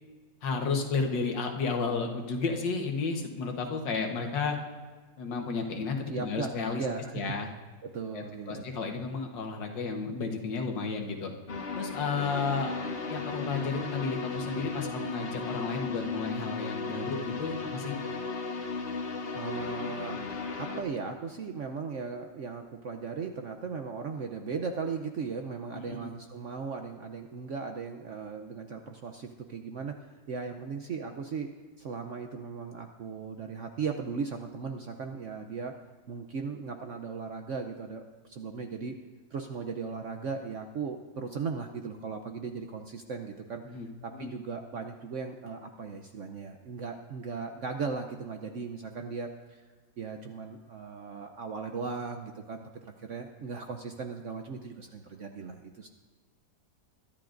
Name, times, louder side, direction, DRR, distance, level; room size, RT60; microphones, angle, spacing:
voice 1, 0.4-4.6 5.2-6.8 7.1-7.5 8.1-11.3 11.7-12.8 13.1-18.0 25.7-26.1 43.6-44.3, left 4 dB, 80° left, 3 dB, 1.9 m, -32 dB
voice 2, 6.1-6.5 6.8-7.4 7.8-8.7 19.3-20.2 20.5-30.0 30.3-31.5 31.8-35.7 36.1-38.0 38.3-39.0 39.3-43.6 44.0-49.7 50.0-55.9, right 5 dB, 60° right, 5 dB, 0.8 m, -37 dB
sound 1, 11.5-20.8, left 4 dB, 40° left, 1.1 m, -35 dB
22.5 x 12.0 x 2.6 m, 1.4 s
omnidirectional pair, 2.0 m